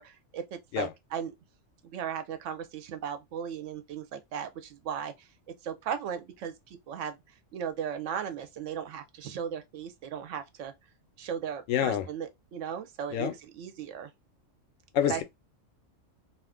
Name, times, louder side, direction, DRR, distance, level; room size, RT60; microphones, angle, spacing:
voice 1, 0.0-1.3 1.8-7.2 7.5-10.7 11.2-14.1 15.1-15.2, right 8 dB, 75° right, 0.9 m, -37 dB
voice 2, 11.7-12.0 13.1-13.3 14.9-15.2, left 10 dB, 80° left, 1.0 m, -27 dB
2.5 x 2.5 x 3.5 m
omnidirectional pair, 1.3 m